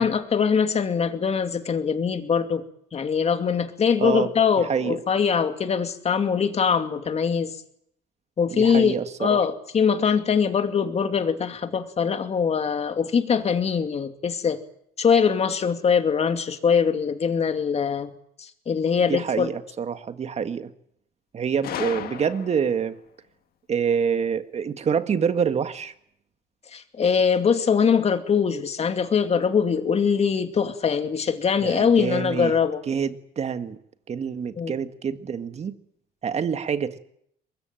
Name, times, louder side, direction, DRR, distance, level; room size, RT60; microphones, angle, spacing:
voice 1, 0.0-2.6 2.9-7.5 8.4-8.9 9.2-14.6 15.0-18.1 18.4-19.5 26.7-32.8 34.6-34.7, left 6 dB, 40° left, 8 dB, 2.5 m, -22 dB
voice 2, 4.0-4.3 4.6-5.0 8.5-9.4 19.1-20.7 21.3-23.0 23.7-25.9 31.6-32.6 32.9-33.8 34.1-35.8 36.2-37.0, right 7 dB, 40° right, 10 dB, 1.8 m, -26 dB
Gunshot gunfire, 21.6-22.9, left 10 dB, 65° left, 1.9 m, -34 dB
23.5 x 21.0 x 9.0 m, 0.71 s
cardioid pair, 110°, 17 cm